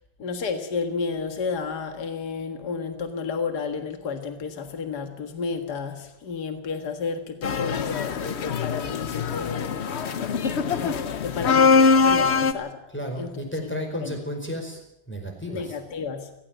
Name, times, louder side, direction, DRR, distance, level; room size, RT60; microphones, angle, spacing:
voice 1, 0.2-10.0 10.8-12.8 13.2-13.3 13.6-14.2 15.5-16.3, left 5 dB, 65° left, 7 dB, 2.3 m, -32 dB
sound 1, 7.4-12.5, left 5 dB, 50° left, 1.0 m, -22 dB
voice 2, 12.9-14.8 15.1-15.8, equal, 5° left, 2 dB, 4.8 m, -32 dB
17.5 x 16.5 x 9.0 m, 0.85 s
omnidirectional pair, 1.9 m